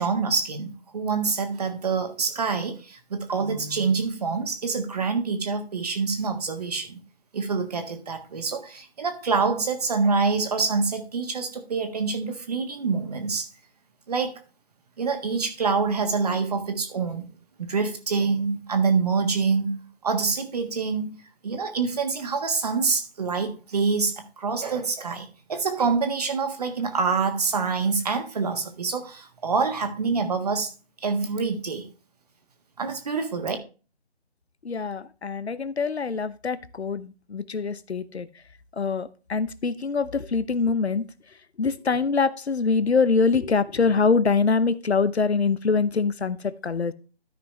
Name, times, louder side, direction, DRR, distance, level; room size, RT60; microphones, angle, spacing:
voice 1, 0.0-7.0 7.3-13.5 14.1-14.3 15.0-17.3 17.6-21.2 21.4-30.7 31.0-31.9 32.8-33.6, right 4 dB, 40° right, 1.4 m, -26 dB
voice 2, 34.6-38.3 38.8-41.1 41.6-46.9, left 4 dB, 80° left, 0.9 m, -24 dB
13.0 x 5.7 x 3.2 m
figure-of-eight pair, 160°, 32 cm